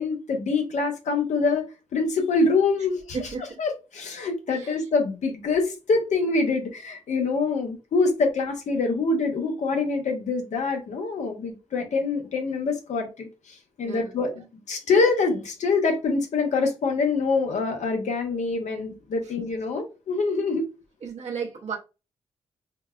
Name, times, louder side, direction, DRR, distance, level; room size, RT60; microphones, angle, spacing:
voice 1, 0.0-1.6 1.9-20.6, left 4 dB, 75° left, 0.9 m, -25 dB
voice 2, 3.1-3.6 4.5-4.9 13.8-14.4 19.2-19.3 21.0-21.8, right 5 dB, 65° right, 0.7 m, -35 dB
3.8 x 2.2 x 2.3 m
supercardioid pair, 45°, 12 cm